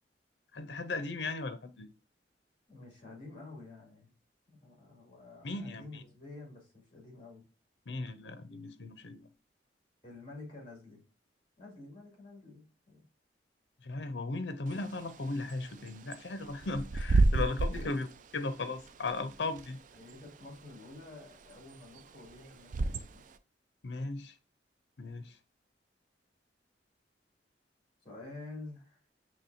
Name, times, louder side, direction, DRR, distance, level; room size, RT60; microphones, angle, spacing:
voice 1, 0.5-1.9 5.4-6.0 7.9-9.3 13.8-18.1 18.3-19.8 23.8-24.3 25.0-25.3, left 3 dB, 75° left, 0.6 m, -37 dB
voice 2, 2.7-4.1 4.5-7.4 10.0-11.0 11.6-13.1 17.7-17.9 19.9-23.2 28.0-29.0, left 2 dB, 30° left, 2.4 m, -49 dB
Bird / Wind, 14.7-23.4, right 3 dB, 45° right, 0.4 m, -33 dB
5.9 x 3.0 x 2.6 m
head